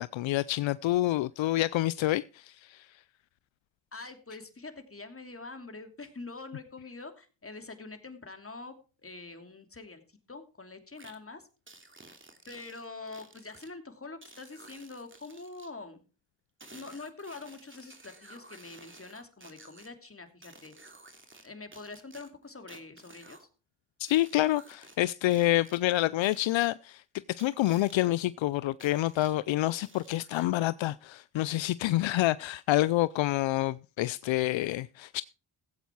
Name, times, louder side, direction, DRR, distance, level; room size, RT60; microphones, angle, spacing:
voice 1, 0.0-2.9 24.0-27.0 27.4-35.2, left 16 dB, 75° left, 0.5 m, -28 dB
voice 2, 3.9-8.7 9.0-10.0 10.3-11.5 12.5-16.0 16.7-20.7 21.4-23.5, left 3 dB, 30° left, 2.9 m, -45 dB
sound 1, 11.0-11.2 11.7-13.7 14.2-15.7 16.6-19.9 20.4-21.5 21.7-23.5 24.0-25.0 25.3-25.8 26.2-26.7 27.4-28.1 28.8-29.4 29.8-30.6, right 2 dB, 25° right, 2.8 m, -53 dB
16.0 x 8.2 x 4.6 m
cardioid pair, 50°, 46 cm